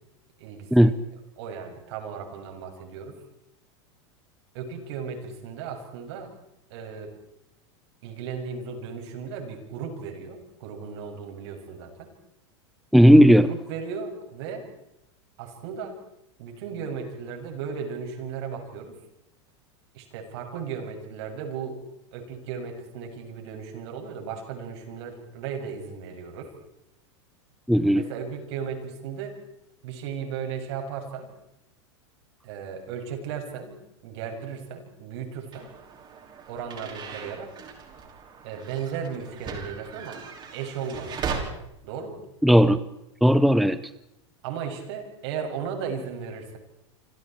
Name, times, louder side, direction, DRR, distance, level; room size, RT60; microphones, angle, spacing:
voice 1, 0.4-0.9 1.4-3.2 4.5-6.3 6.7-7.1 8.0-12.1 13.5-14.7 15.4-15.9 16.4-18.9 19.9-21.8 22.1-26.5 27.9-29.4 29.8-31.3 32.4-35.7 36.5-37.5 38.4-40.2 40.5-41.2 41.8-42.2 44.4-46.6, right 6 dB, 65° right, 3 dB, 7.1 m, -35 dB
voice 2, 12.9-13.5 27.7-28.0 42.4-42.8 43.2-43.8, equal, ahead, 14 dB, 0.8 m, -15 dB
sound 1, 35.5-41.4, right 6 dB, 30° right, 5.4 m, -38 dB
29.0 x 26.0 x 4.6 m, 0.85 s
supercardioid pair, 125°, 15 cm